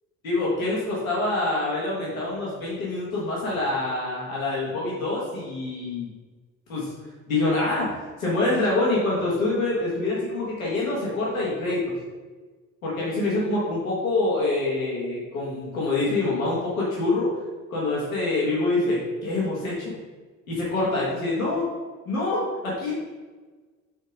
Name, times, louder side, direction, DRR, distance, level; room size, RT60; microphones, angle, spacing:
voice 1, 0.2-6.1 6.7-6.9 7.3-11.9 12.8-17.3 17.7-19.9 20.5-21.7 22.1-22.9, left 2 dB, 90° left, -6 dB, 1.3 m, -25 dB
5.0 x 4.0 x 5.1 m, 1.3 s
figure-of-eight pair, 45°, 40 cm